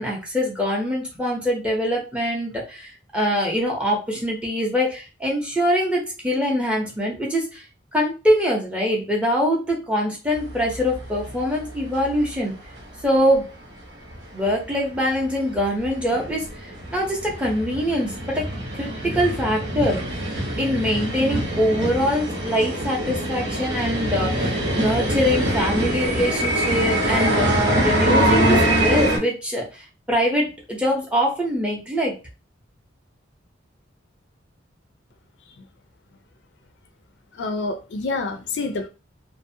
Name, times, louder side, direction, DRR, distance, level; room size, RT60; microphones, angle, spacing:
voice 1, 0.0-7.6 7.9-12.5 13.0-13.5 14.3-18.5 18.7-20.0 20.6-32.2, equal, 5° right, 0.6 m, -23 dB
sound 1, 10.3-12.4 12.7-12.8 13.3-13.4 13.7-13.8 14.1-29.2, right 1 dB, 70° right, 0.8 m, -24 dB
voice 2, 37.3-38.9, left 3 dB, 60° left, 0.4 m, -27 dB
2.5 x 2.0 x 2.6 m
head